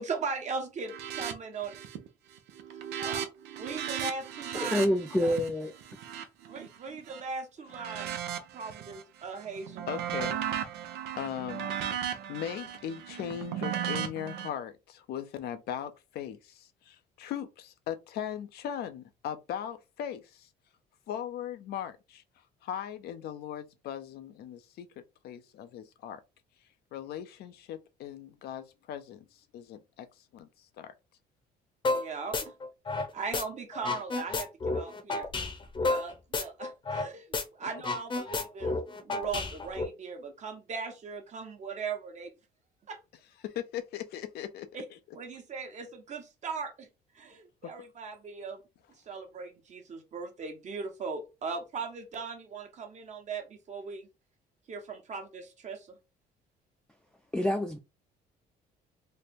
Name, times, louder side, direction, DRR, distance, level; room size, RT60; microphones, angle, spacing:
voice 1, 0.0-1.8 3.0-3.3 3.6-4.8 5.2-5.3 6.5-8.1 8.5-9.8 31.9-32.5 32.9-35.3 35.8-38.8 39.0-42.3 42.9-43.0 44.7-44.8 45.1-46.9 47.1-48.6 49.1-54.1 54.7-56.0, right 4 dB, 45° right, 1.1 m, -39 dB
sound 1, 0.9-1.3 1.6-2.1 2.4-7.2 7.7-9.0 9.4-14.5, right 9 dB, 85° right, 0.7 m, -36 dB
voice 2, 4.5-5.7 57.3-57.8, left 1 dB, 5° left, 0.4 m, -27 dB
voice 3, 9.9-10.4 11.2-11.7 12.0-20.5 21.1-22.2 22.6-24.9 25.2-26.2 26.9-30.9 43.4-45.0 45.3-45.4 47.6-47.7, left 10 dB, 70° left, 0.6 m, -39 dB
sound 2, 31.8-32.0 32.3-33.4 33.7-37.1 37.3-37.4 37.7-39.8, left 3 dB, 30° left, 0.8 m, -31 dB
3.2 x 2.2 x 4.2 m
cardioid pair, 110°, 17 cm